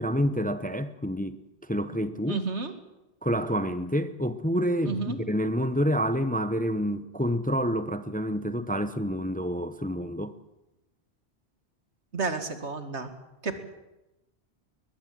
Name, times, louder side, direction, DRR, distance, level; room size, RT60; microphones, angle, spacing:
voice 1, 0.0-1.4 1.7-2.4 3.2-10.3, equal, 10° left, 0.7 m, -28 dB
voice 2, 2.3-2.7 4.8-5.2 12.1-13.1 13.4-13.6, right 4 dB, 85° right, 2.3 m, -31 dB
22.0 x 20.5 x 7.7 m
omnidirectional pair, 1.1 m